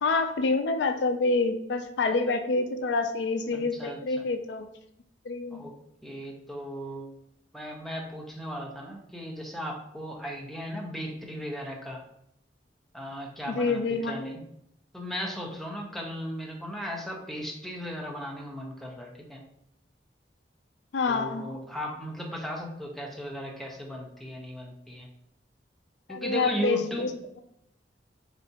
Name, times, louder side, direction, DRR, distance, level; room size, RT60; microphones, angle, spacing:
voice 1, 0.0-4.7 5.3-5.6 13.5-14.1 20.9-21.4 26.1-27.1, left 3 dB, 70° left, 7 dB, 0.4 m, -27 dB
voice 2, 3.5-4.3 5.5-5.8 6.0-7.1 7.5-12.0 12.9-14.4 14.9-19.4 21.1-25.1 26.1-27.1, equal, ahead, -1 dB, 0.6 m, -36 dB
3.9 x 3.4 x 2.8 m, 0.77 s
head